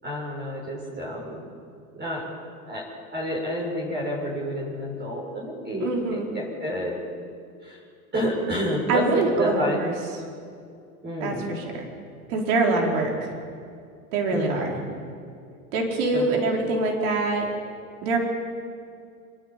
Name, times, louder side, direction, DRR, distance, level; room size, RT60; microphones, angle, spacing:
voice 1, 0.0-1.4 1.9-2.2 2.7-2.8 3.1-7.0 7.6-7.8 8.1-9.8 11.0-11.5 14.3-14.8 16.1-16.4, equal, 25° right, -3 dB, 6.8 m, -29 dB
voice 2, 5.8-6.3 8.9-9.9 11.2-11.9 12.3-13.3 14.1-14.8 15.7-17.5 18.0-18.2, right 3 dB, 70° right, 0 dB, 4.5 m, -24 dB
29.0 x 11.0 x 9.1 m, 2.3 s
hypercardioid pair, 100°, 43 cm